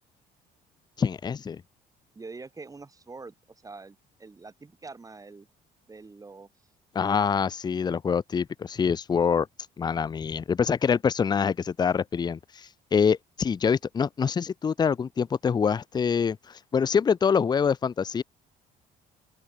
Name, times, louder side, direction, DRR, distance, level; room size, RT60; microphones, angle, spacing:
voice 1, 1.0-1.6 6.9-9.5 9.8-18.2, left 6 dB, 25° left, 0.5 m, -25 dB
voice 2, 2.1-3.3 3.6-5.5 5.9-6.5, right 3 dB, 20° right, 2.7 m, -44 dB
open air
cardioid pair, 110°, 17 cm